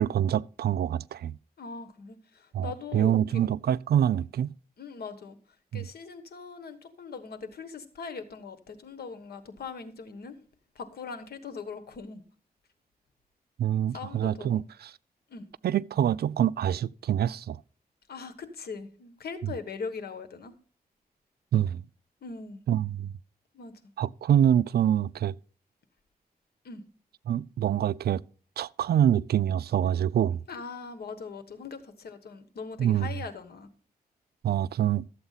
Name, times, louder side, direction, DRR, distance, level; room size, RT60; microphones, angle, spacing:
voice 1, 0.0-1.4 2.5-4.5 5.7-5.8 13.6-14.9 15.6-17.6 21.5-21.8 22.7-23.1 24.0-25.3 27.3-28.2 28.6-30.4 32.8-33.1 34.4-35.1, right 10 dB, 90° right, 0.4 m, -25 dB
voice 2, 1.6-3.4 4.8-5.4 5.7-10.4 10.7-12.2 13.9-14.7 15.3-15.5 18.1-20.5 22.2-22.7 23.5-23.7 26.6-26.8 30.5-33.7, left 5 dB, 90° left, 1.2 m, -40 dB
12.5 x 7.9 x 4.0 m
wide cardioid pair, 125°, 16 cm